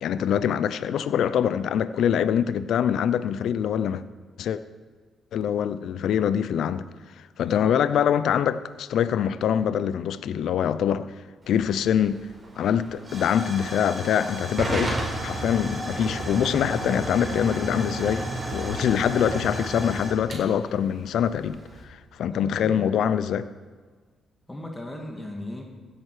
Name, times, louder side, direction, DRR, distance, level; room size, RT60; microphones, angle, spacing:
voice 1, 0.0-4.0 4.4-4.6 5.3-6.9 7.4-11.1 11.5-12.3 12.6-18.2 18.5-21.6 21.9-23.5, left 9 dB, 70° left, 0.5 m, -24 dB
Hiss / Fire / Tick, 11.4-21.8, right 1 dB, 25° right, 4.4 m, -33 dB
voice 2, 22.3-22.8 24.5-25.6, left 1 dB, 15° left, 2.0 m, -37 dB
16.0 x 9.0 x 4.9 m
cardioid pair, 90°, 0 cm